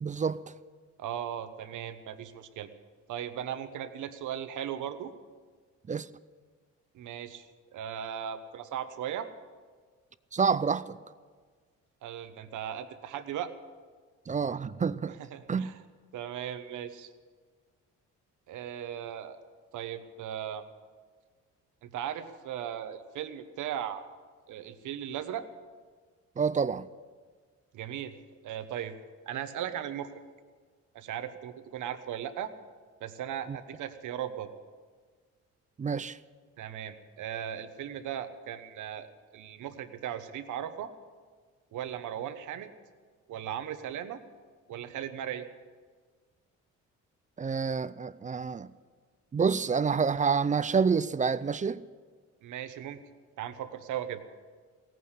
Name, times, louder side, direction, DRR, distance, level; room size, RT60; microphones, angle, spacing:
voice 1, 0.0-0.4 5.9-6.1 10.3-11.0 14.3-15.2 15.5-15.7 26.4-26.9 33.5-33.6 35.8-36.2 47.4-48.7 49.3-51.8, right 5 dB, 25° right, 0.5 m, -28 dB
voice 2, 1.0-2.7 3.1-5.1 6.9-7.5 7.7-9.3 12.0-13.5 15.2-15.7 16.1-17.1 18.5-19.4 19.7-20.6 21.8-24.0 24.5-25.5 27.7-28.1 28.4-28.9 29.3-30.1 30.9-32.5 33.0-34.5 36.6-39.1 39.3-40.9 41.7-42.7 43.3-44.2 44.7-45.5 52.4-53.0 53.4-54.2, right 10 dB, 80° right, 1.1 m, -37 dB
17.0 x 9.3 x 8.1 m
cardioid pair, 90°, 30 cm